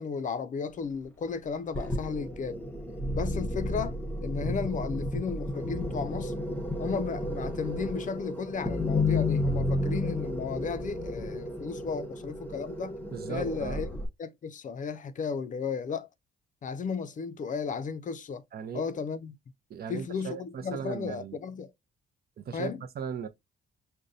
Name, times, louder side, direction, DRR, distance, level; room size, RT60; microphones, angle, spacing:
voice 1, 0.0-2.6 3.1-6.3 6.8-12.9 13.3-13.9 14.2-16.1 16.6-18.4 18.7-19.3 19.9-21.7 22.5-22.8, left 5 dB, 40° left, 0.4 m, -34 dB
sound 1, 1.7-14.1, left 1 dB, 10° left, 0.9 m, -32 dB
voice 2, 13.1-13.9 18.5-18.8 19.7-21.4 22.4-22.7 23.0-23.3, right 7 dB, 50° right, 0.6 m, -37 dB
5.1 x 2.2 x 2.5 m
cardioid pair, 90°, 20 cm